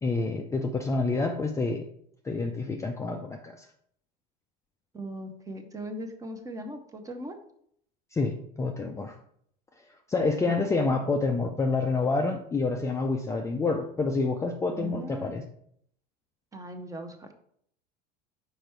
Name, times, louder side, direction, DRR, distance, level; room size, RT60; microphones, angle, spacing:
voice 1, 0.0-1.8 2.2-3.6 8.1-9.2 10.1-15.4, left 3 dB, 15° left, 2 dB, 0.5 m, -28 dB
voice 2, 4.9-7.4 14.7-15.3 16.5-17.3, right 1 dB, 15° right, 6 dB, 0.8 m, -39 dB
5.0 x 4.6 x 4.4 m, 0.66 s
supercardioid pair, 115°, 21 cm